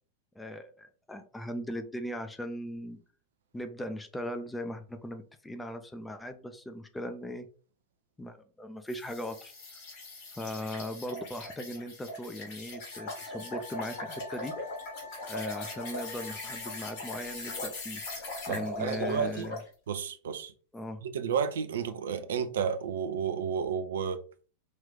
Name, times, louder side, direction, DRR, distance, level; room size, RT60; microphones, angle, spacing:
voice 1, 0.3-3.0 3.5-7.5 8.2-9.5 10.4-14.5 15.3-19.6 20.7-21.0, left 1 dB, 10° left, 0.7 m, -39 dB
sound 1, 8.9-19.7, left 2 dB, 50° left, 2.0 m, -40 dB
Wind instrument woodwind instrument, 12.9-17.8, left 5 dB, 90° left, 0.7 m, -49 dB
voice 2, 18.5-19.5 19.9-20.5 21.0-24.2, right 7 dB, 60° right, 0.6 m, -31 dB
5.3 x 2.7 x 3.5 m
figure-of-eight pair, 90°, 0 cm